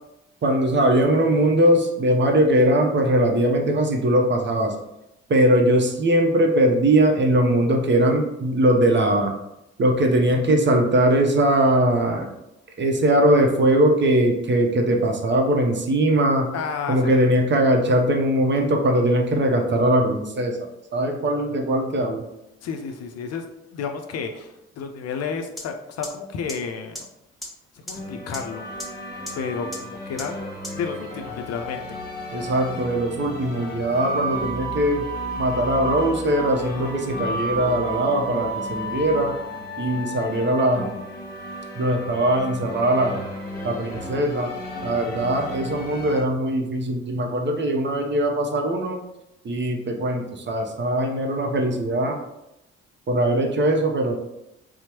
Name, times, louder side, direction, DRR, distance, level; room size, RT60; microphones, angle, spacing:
voice 1, 0.4-4.7 5.3-9.3 9.8-12.3 12.8-16.5 16.9-20.6 20.9-22.3 32.3-35.1 35.4-39.3 39.8-41.0 41.8-43.2 43.6-44.5 44.8-49.0 49.4-52.2 53.1-54.2, right 1 dB, 35° right, 2 dB, 0.7 m, -20 dB
voice 2, 16.5-17.2 22.6-23.4 23.7-27.0 27.8-28.7 29.3-30.4 30.7-31.9, left 5 dB, 50° left, 4 dB, 0.5 m, -31 dB
sound 1, 25.6-25.7 26.0-26.1 26.5-26.6 26.9-27.0 27.4-27.5 27.9-28.0 28.3-28.4 28.8-28.9 29.3-29.4 29.7-29.8 30.2-30.3 30.6-30.7, left 1 dB, ahead, 0.8 m, -33 dB
sound 2, 27.9-46.2, equal, 30° left, 1.1 m, -33 dB
4.3 x 2.1 x 2.8 m, 0.87 s
hypercardioid pair, 45°, 33 cm